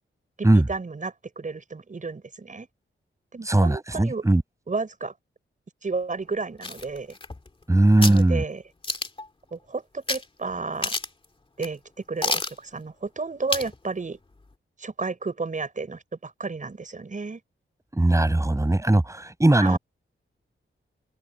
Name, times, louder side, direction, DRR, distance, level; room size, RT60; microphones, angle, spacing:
voice 1, 0.7-2.7 3.3-4.2 4.7-5.1 5.8-7.2 8.0-8.6 9.5-10.9 11.6-11.8 12.1-14.2 14.8-17.4 19.6-19.8, right 4 dB, 35° right, 6.1 m, -32 dB
voice 2, 3.5-4.4 7.7-8.4 17.9-19.8, right 1 dB, 15° right, 7.0 m, -19 dB
sound 1, 6.6-7.6 8.0-8.2 8.8-9.3 10.1-10.2 10.5-10.6 10.8-11.2 11.6-11.7 12.2-12.6 13.5-13.8 14.1-14.2, left 2 dB, 25° left, 2.2 m, -28 dB
wide cardioid pair, 160°, 21 cm